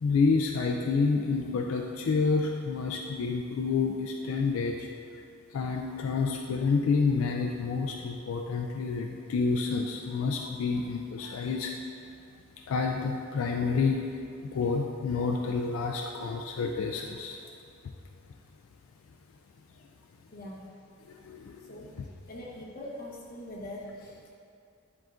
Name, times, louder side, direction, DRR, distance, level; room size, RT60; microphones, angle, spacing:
voice 1, 0.0-4.9 5.5-11.7 12.7-14.0 14.4-17.4 21.2-21.7, left 4 dB, 80° left, 1 dB, 0.3 m, -29 dB
voice 2, 20.3-20.8 21.6-21.9 22.3-24.3, left 1 dB, 45° left, -4 dB, 1.1 m, -42 dB
10.5 x 3.6 x 2.5 m, 2.4 s
head